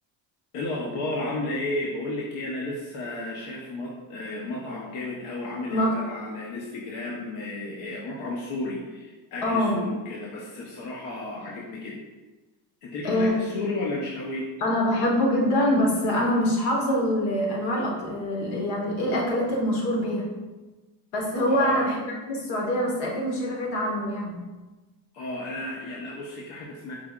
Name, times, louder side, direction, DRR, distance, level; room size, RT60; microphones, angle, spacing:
voice 1, 0.5-11.9 12.8-14.4 21.5-21.8 25.1-26.9, left 2 dB, 65° left, -3 dB, 0.7 m, -33 dB
voice 2, 9.4-9.9 13.0-13.3 14.6-20.3 21.1-22.0 22.3-24.5, left 1 dB, 90° left, -2 dB, 1.2 m, -24 dB
4.9 x 2.3 x 3.5 m, 1.2 s
cardioid pair, 170°, 40 cm